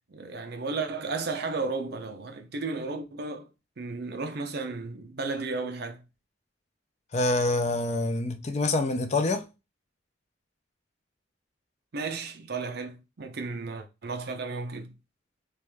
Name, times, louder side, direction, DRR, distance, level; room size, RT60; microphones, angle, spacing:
voice 1, 0.1-3.5 3.8-6.0 11.9-14.9, right 3 dB, 55° right, 0.6 m, -34 dB
voice 2, 7.1-9.5, left 2 dB, 35° left, 0.5 m, -26 dB
3.3 x 3.0 x 3.4 m
head